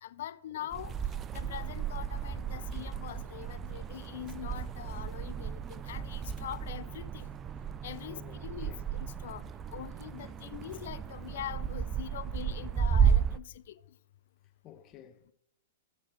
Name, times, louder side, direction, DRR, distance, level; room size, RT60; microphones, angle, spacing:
voice 1, 0.0-0.9 1.3-7.3 7.8-8.7 9.0-9.4 9.7-13.6, left 11 dB, 65° left, 0.6 m, -43 dB
sound 1, 0.7-13.4, right 7 dB, 25° right, 0.5 m, -33 dB
voice 2, 8.1-8.8 14.6-15.3, left 10 dB, 35° left, 1.3 m, -53 dB
13.5 x 7.6 x 3.9 m
hypercardioid pair, 110°, 0 cm